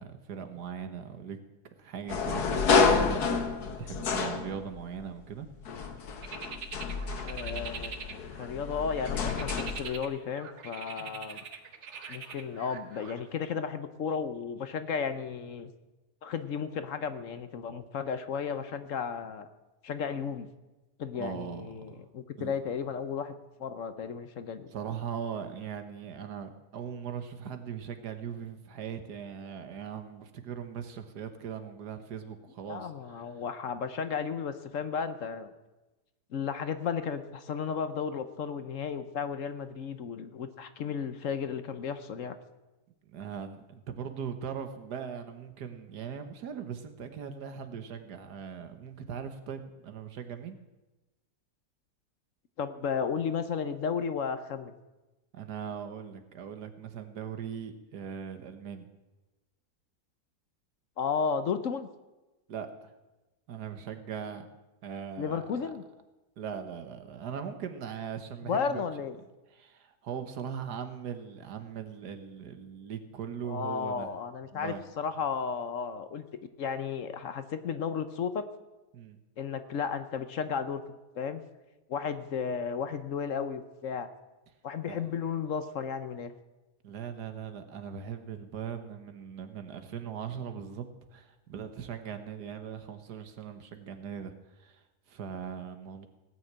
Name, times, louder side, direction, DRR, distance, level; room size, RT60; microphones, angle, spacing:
voice 1, 0.0-1.4 1.8-5.5 11.0-11.2 21.2-22.0 22.4-22.6 24.7-33.2 43.0-50.6 55.3-58.9 62.5-62.9 63.5-64.5 64.8-65.7 66.4-68.8 69.5-74.1 74.5-74.8 78.9-79.2 84.9-85.2 86.8-96.1, right 7 dB, 90° right, 8 dB, 1.8 m, -40 dB
sound 1, 2.1-5.0 5.6-9.8, left 5 dB, 75° left, 1.7 m, -29 dB
sound 2, 6.2-8.5 8.9-13.2, right 6 dB, 50° right, 1.2 m, -43 dB
voice 2, 7.2-11.4 12.1-15.7 16.2-19.5 19.8-20.5 21.0-23.3 23.6-24.7 32.7-35.5 36.3-42.4 52.6-54.7 61.0-61.9 65.2-65.8 68.4-69.1 73.5-76.2 76.6-78.5 79.4-81.4 81.9-84.1 84.6-86.3, left 6 dB, 60° left, 11 dB, 1.1 m, -34 dB
18.0 x 6.3 x 8.8 m, 1.1 s
omnidirectional pair, 1.7 m